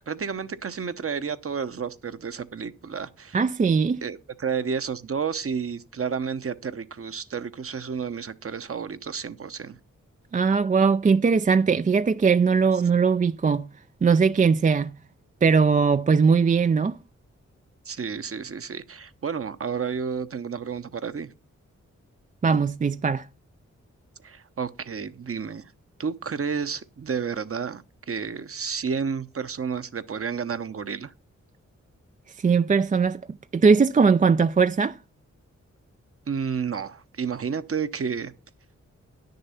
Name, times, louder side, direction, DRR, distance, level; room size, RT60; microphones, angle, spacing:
voice 1, 0.1-3.4 4.0-9.8 17.8-21.3 24.2-25.7 26.0-31.1 36.3-38.3, right 6 dB, 50° right, 0.9 m, -31 dB
voice 2, 3.3-4.0 10.3-13.7 14.0-14.9 15.4-17.0 22.4-23.3 32.4-33.2 33.5-35.0, right 5 dB, 25° right, 0.4 m, -20 dB
10.5 x 6.7 x 5.8 m
cardioid pair, 50°, 30 cm